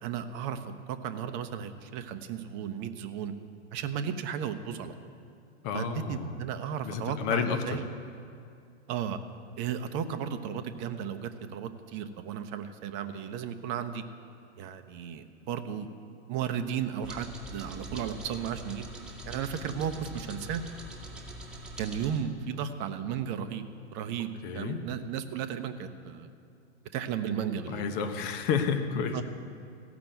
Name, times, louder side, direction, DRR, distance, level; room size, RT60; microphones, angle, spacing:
voice 1, 0.0-3.3 3.7-4.9 5.7-7.9 8.9-9.2 9.6-14.0 14.6-15.9 16.3-18.9 19.2-20.6 21.8-23.6 23.9-26.3 26.9-27.8 29.1-29.2, right 8 dB, 35° right, 8 dB, 0.8 m, -34 dB
voice 2, 5.6-6.3 6.8-7.8 24.4-24.8 27.7-29.2, left 6 dB, 40° left, 7 dB, 1.1 m, -30 dB
sound 1, 17.0-22.2, right 1 dB, ahead, 2.0 m, -43 dB
15.5 x 6.1 x 7.9 m, 2.4 s
hypercardioid pair, 110°, 34 cm